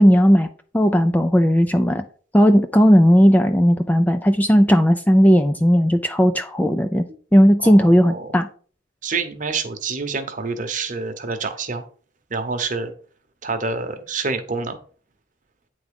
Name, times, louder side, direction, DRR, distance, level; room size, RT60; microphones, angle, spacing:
voice 1, 0.0-2.0 2.3-7.0 7.3-8.5, equal, 10° left, 7 dB, 0.4 m, -15 dB
voice 2, 7.6-8.3 9.0-11.8 12.3-12.9 13.4-14.8, right 4 dB, 40° right, 7 dB, 1.0 m, -27 dB
9.0 x 3.6 x 5.2 m, 0.43 s
head